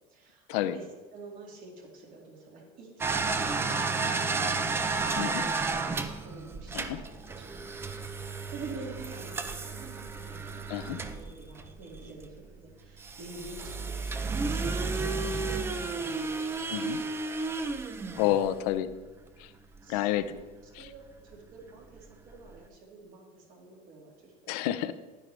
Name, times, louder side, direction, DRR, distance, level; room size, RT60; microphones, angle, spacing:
voice 1, 0.1-0.9 1.1-16.9 19.8-20.2 20.8-24.5, right 3 dB, 45° right, 0 dB, 2.2 m, -48 dB
sound 1, 3.0-12.3 13.0-18.9 20.4-20.5 20.9-21.0 22.0-22.1 22.3-22.5, right 4 dB, 10° right, 0.4 m, -32 dB
voice 2, 10.7-11.0 16.7-17.0 18.1-18.9 19.4-19.5 19.9-20.4 20.7-20.9 24.5-24.9, left 13 dB, 85° left, 12 dB, 0.6 m, -29 dB
10.5 x 9.9 x 3.4 m, 1.2 s
cardioid pair, 160°, 20 cm